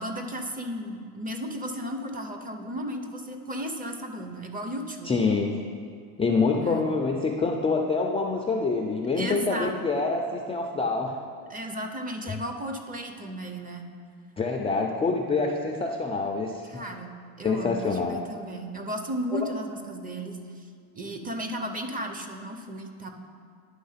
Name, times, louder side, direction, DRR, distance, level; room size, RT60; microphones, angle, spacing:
voice 1, 0.0-5.2 6.5-6.9 9.2-9.7 11.5-13.9 16.7-20.7 20.9-23.1, equal, 20° right, 5 dB, 0.7 m, -34 dB
voice 2, 5.0-5.6 6.2-11.1 14.4-16.7 17.4-18.2 19.3-19.4, left 4 dB, 15° left, 1 dB, 0.4 m, -26 dB
10.5 x 3.5 x 5.7 m, 2.2 s
cardioid pair, 115°, 43 cm